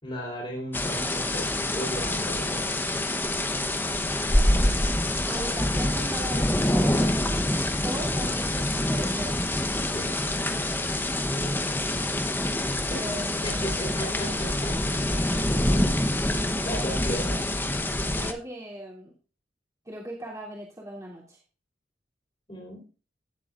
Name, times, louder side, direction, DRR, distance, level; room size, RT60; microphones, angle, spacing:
voice 1, 0.0-2.8 9.8-10.2 12.9-13.1 13.4-14.8 15.1-15.4 16.6-17.4 22.5-22.8, equal, 30° left, -4 dB, 4.1 m, -35 dB
sound 1, 0.7-18.3, left 1 dB, 10° left, 0.9 m, -26 dB
voice 2, 5.3-7.4 7.8-9.5 11.3-11.6 12.9-13.3 18.1-19.1 19.8-21.4, right 1 dB, 20° right, -5 dB, 3.1 m, -38 dB
17.0 x 8.1 x 2.5 m, 0.34 s
head